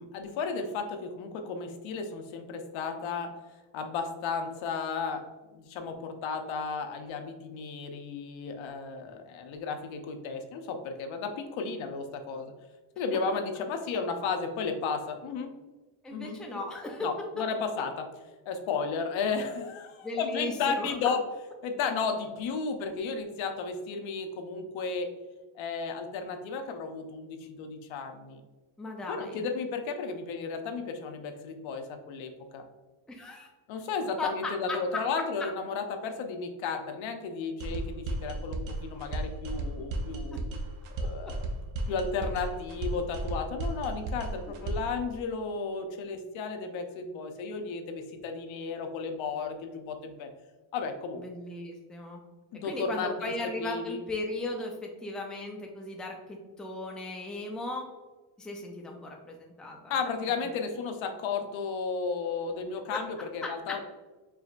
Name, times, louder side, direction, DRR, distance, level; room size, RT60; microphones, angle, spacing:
voice 1, 0.0-3.3 3.7-5.2 5.5-12.5 13.0-15.5 16.1-16.4 17.0-18.0 18.5-21.2 21.6-25.1 25.5-28.4 29.1-32.6 33.7-40.4 40.9-41.5 41.9-50.3 50.7-51.2 52.5-53.3 53.6-54.0 59.9-63.8, left 5 dB, 75° left, 6 dB, 0.7 m, -33 dB
voice 2, 16.0-17.1 20.0-21.1 28.8-29.5 33.1-33.5 34.2-35.0 51.2-52.2 52.6-57.8 58.4-59.9 60.4-60.5 62.9-63.0, left 2 dB, ahead, 1 dB, 0.4 m, -37 dB
sound 1, 37.6-45.0, right 2 dB, 80° right, 0.8 m, -34 dB
4.8 x 3.1 x 2.4 m, 1.2 s
cardioid pair, 125°, 47 cm